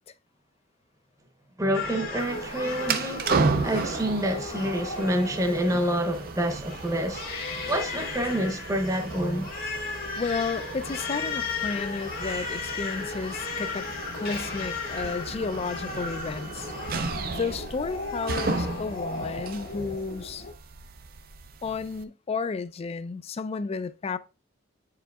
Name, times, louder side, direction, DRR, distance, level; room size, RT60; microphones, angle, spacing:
voice 1, 1.6-9.5, equal, 15° right, 0.8 m, -28 dB
Crying sobbing, 1.7-20.5, left 4 dB, 50° left, 1.1 m, -36 dB
sound 1, 2.2-22.0, right 4 dB, 50° right, 0.5 m, -34 dB
voice 2, 10.2-16.7 17.3-20.5 21.6-24.2, left 4 dB, 30° left, 0.3 m, -32 dB
8.8 x 4.8 x 2.3 m
head